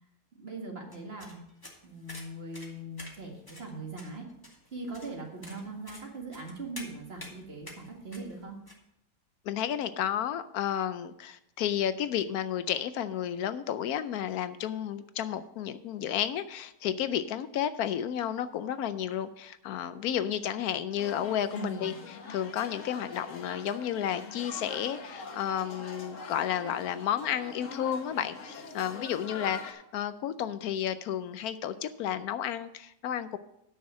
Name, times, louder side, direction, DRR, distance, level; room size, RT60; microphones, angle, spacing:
voice 1, 0.3-1.4 1.8-4.3 4.7-8.6 21.5-21.9, right 2 dB, 40° right, 1 dB, 2.0 m, -40 dB
sound 1, 0.9-8.8, left 1 dB, 15° left, 1.6 m, -49 dB
voice 2, 9.5-21.9 22.3-33.4, left 10 dB, 75° left, 13 dB, 1.0 m, -32 dB
sound 2, 21.0-29.7, left 4 dB, 55° left, 1.4 m, -44 dB
9.4 x 6.3 x 6.2 m, 0.81 s
omnidirectional pair, 1.7 m